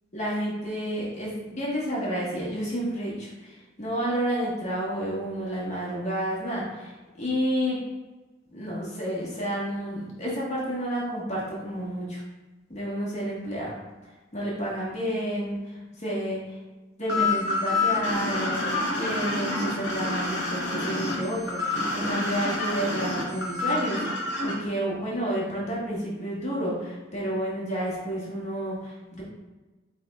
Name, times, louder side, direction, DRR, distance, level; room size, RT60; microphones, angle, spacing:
voice 1, 0.1-7.8 8.5-12.2 12.7-13.8 14.3-16.6 17.0-29.2, equal, 40° left, -6 dB, 1.4 m, -30 dB
sound 1, 17.1-24.5, left 3 dB, 70° left, 1.1 m, -28 dB
5.4 x 3.5 x 2.4 m, 1.2 s
head